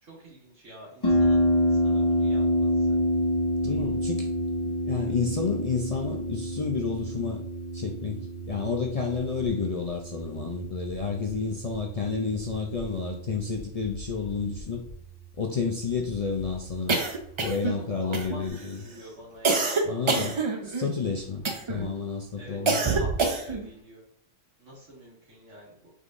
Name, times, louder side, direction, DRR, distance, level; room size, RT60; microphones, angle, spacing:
voice 1, 0.0-3.0 17.8-19.7 22.4-24.0 24.6-25.9, equal, 80° right, -5 dB, 2.2 m, -47 dB
Harp, 1.0-18.5, equal, 25° left, 0.7 m, -29 dB
voice 2, 3.6-4.3 4.8-7.4 7.7-14.8 15.4-17.0 17.4-18.8 19.8-20.4 20.6-22.8, left 5 dB, 65° left, 1 dB, 0.3 m, -30 dB
sound 1, 16.9-17.8 18.1-18.6 19.4-20.9 21.4-21.9 22.7-23.7, right 4 dB, 45° right, 0.3 m, -26 dB
5.0 x 3.6 x 2.5 m, 0.66 s
omnidirectional pair, 1.3 m